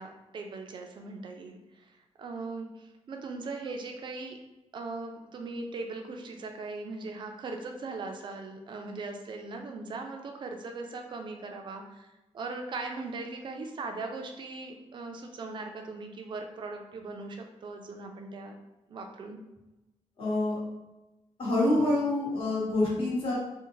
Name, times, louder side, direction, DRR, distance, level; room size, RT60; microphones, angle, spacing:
voice 1, 0.0-1.9 2.2-4.4 4.7-12.1 12.3-18.5 18.9-19.4, right 3 dB, 45° right, 3 dB, 0.3 m, -39 dB
voice 2, 20.2-20.6 21.4-23.4, left 2 dB, 50° left, -7 dB, 1.1 m, -26 dB
2.6 x 2.1 x 3.0 m, 1.0 s
wide cardioid pair, 180°, 11 cm